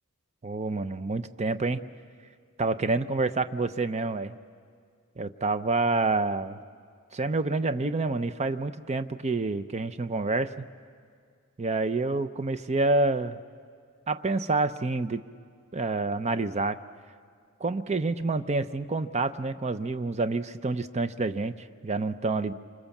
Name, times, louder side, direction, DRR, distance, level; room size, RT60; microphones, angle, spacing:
voice 1, 0.4-1.8 2.6-4.3 5.2-6.6 7.1-10.7 11.6-13.4 14.1-15.2 15.7-16.8 17.6-22.5, right 3 dB, 30° right, 11 dB, 0.6 m, -28 dB
27.5 x 25.0 x 7.2 m, 2.1 s
head